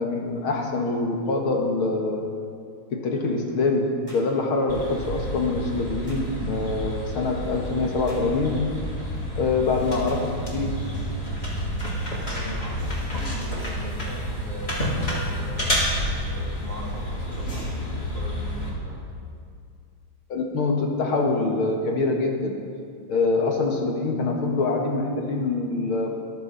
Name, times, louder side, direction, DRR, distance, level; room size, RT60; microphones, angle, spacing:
voice 1, 0.0-2.3 2.9-8.6 9.4-10.9 20.3-22.6 23.1-26.2, left 3 dB, 75° left, 1 dB, 2.5 m, -25 dB
sound 1, 4.1-4.3 6.1-6.3 8.1-8.3 10.1-10.3, equal, 10° right, 5.1 m, -47 dB
sound 2, 4.7-18.7, equal, 25° left, 3.5 m, -29 dB
voice 2, 7.7-8.0 12.3-15.7 16.2-19.1, right 1 dB, 45° right, -5 dB, 3.8 m, -41 dB
22.0 x 14.0 x 4.2 m, 2.3 s
omnidirectional pair, 2.4 m